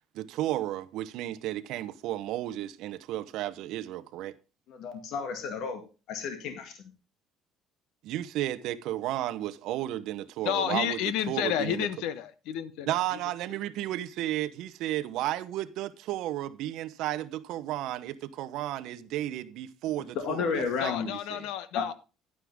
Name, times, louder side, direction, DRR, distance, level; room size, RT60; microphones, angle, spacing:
voice 1, 0.1-4.3 8.0-11.0 11.3-11.9 12.9-21.5, right 14 dB, 65° right, 0.9 m, -33 dB
voice 2, 4.7-5.8 6.1-6.9 20.2-21.1 21.7-21.8, left 6 dB, 60° left, 2.0 m, -32 dB
voice 3, 10.4-13.2 20.8-21.9, left 11 dB, 75° left, 1.1 m, -31 dB
11.0 x 9.7 x 3.6 m
cardioid pair, 150°, 0 cm